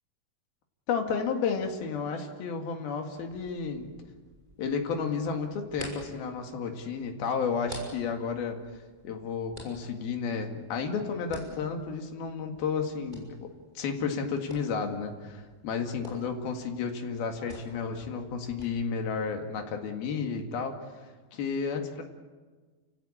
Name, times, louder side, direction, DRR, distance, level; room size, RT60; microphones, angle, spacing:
voice 1, 0.9-3.9 4.6-8.6 9.0-13.5 13.8-22.0, left 5 dB, 80° left, 4 dB, 4.0 m, -32 dB
Bamboo Thwack, 3.1-18.6, equal, 10° right, 5.9 m, -49 dB
29.5 x 16.0 x 8.9 m, 1.4 s
omnidirectional pair, 4.2 m